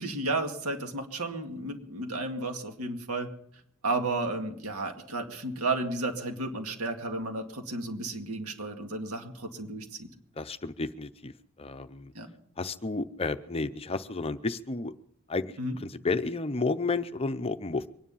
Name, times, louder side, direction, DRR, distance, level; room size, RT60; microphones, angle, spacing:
voice 1, 0.0-3.3 3.8-10.1 12.1-12.3 15.6-15.8, right 2 dB, 80° right, 4 dB, 2.1 m, -33 dB
voice 2, 10.4-11.3 11.6-12.1 12.6-14.9 15.3-15.5 15.8-17.9, left 3 dB, 25° left, 11 dB, 0.6 m, -31 dB
24.0 x 10.0 x 5.5 m, 0.70 s
head